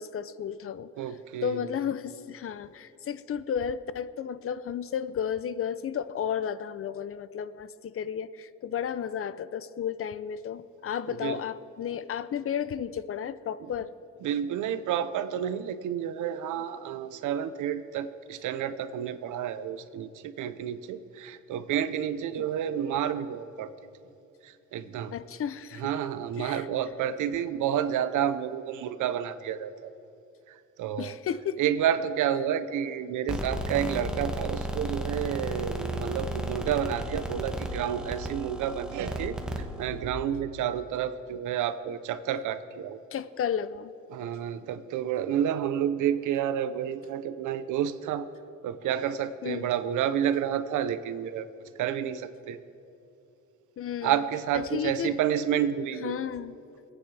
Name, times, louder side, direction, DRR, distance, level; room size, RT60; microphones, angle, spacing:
voice 1, 0.0-0.9 1.4-13.9 22.4-22.5 25.1-25.9 26.4-26.7 31.0-31.6 43.1-43.9 49.4-49.7 53.8-54.2 54.5-55.1 56.0-56.6, left 8 dB, 45° left, 15 dB, 0.6 m, -33 dB
voice 2, 1.0-1.6 11.1-11.4 14.2-23.7 24.7-25.1 25.8-29.9 30.8-31.1 31.6-39.4 39.8-43.0 44.1-48.3 48.6-51.5 51.8-52.6 54.0-56.2, right 9 dB, 80° right, 13 dB, 0.7 m, -30 dB
sound 1, 33.3-40.1, right 1 dB, 5° right, 1.3 m, -34 dB
26.0 x 9.2 x 3.4 m, 2.7 s
cardioid pair, 90°, 30 cm